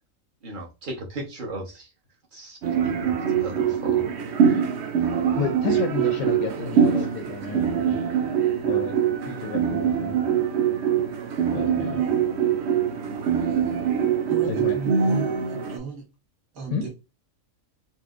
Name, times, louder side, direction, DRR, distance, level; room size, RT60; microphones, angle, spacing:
voice 1, 0.4-1.9 2.3-2.6 2.8-4.0 4.3-4.7 5.7-5.8, right 1 dB, 40° right, 1.0 m, -36 dB
sound 1, 2.6-15.8, right 7 dB, 65° right, 0.8 m, -23 dB
voice 2, 5.3-8.0 8.6-9.0 9.2-10.2 11.5-12.1 14.5-14.7 16.7-16.9, left 6 dB, 80° left, 1.0 m, -31 dB
voice 3, 14.3-16.0 16.5-16.9, right 5 dB, 85° right, 1.7 m, -35 dB
4.3 x 2.0 x 2.4 m
omnidirectional pair, 1.4 m